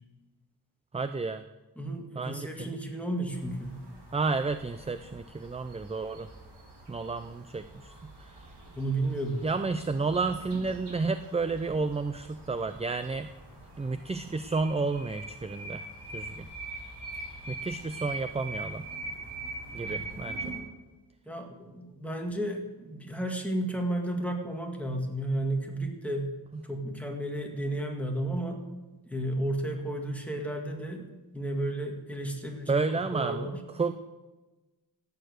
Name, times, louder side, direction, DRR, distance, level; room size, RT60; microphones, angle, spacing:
voice 1, 0.9-1.4 2.2-2.8 4.1-6.3 6.9-8.4 9.4-13.3 13.8-15.8 16.1-16.5 17.5-18.9 19.7-20.6 26.5-26.6 32.7-33.9, right 4 dB, 15° right, 10 dB, 0.4 m, -31 dB
voice 2, 1.8-3.8 8.8-9.5 21.3-26.3 26.6-28.6 29.1-31.1 31.3-32.9 33.1-33.6, right 1 dB, 5° left, 1 dB, 2.0 m, -32 dB
sound 1, 3.3-20.6, right 2 dB, 75° right, 3.7 m, -43 dB
14.0 x 9.5 x 6.6 m, 1.2 s
wide cardioid pair, 125°, 41 cm